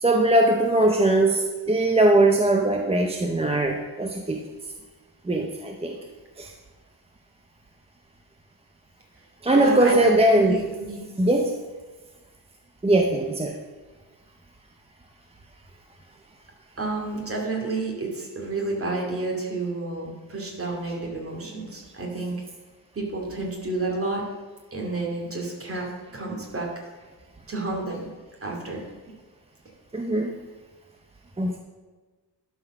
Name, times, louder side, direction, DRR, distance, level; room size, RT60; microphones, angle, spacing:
voice 1, 0.0-4.4 5.3-6.0 6.4-6.5 9.4-10.7 11.2-11.5 12.8-13.6 29.9-30.3 31.4-31.6, right 1 dB, 15° right, 2 dB, 0.6 m, -20 dB
voice 2, 9.5-11.1 16.8-22.3 22.9-24.2 24.7-25.9 26.1-26.7 27.5-28.1 28.4-28.8, right 3 dB, 35° right, -1 dB, 2.4 m, -30 dB
11.5 x 4.8 x 6.4 m, 1.3 s
wide cardioid pair, 145°, 41 cm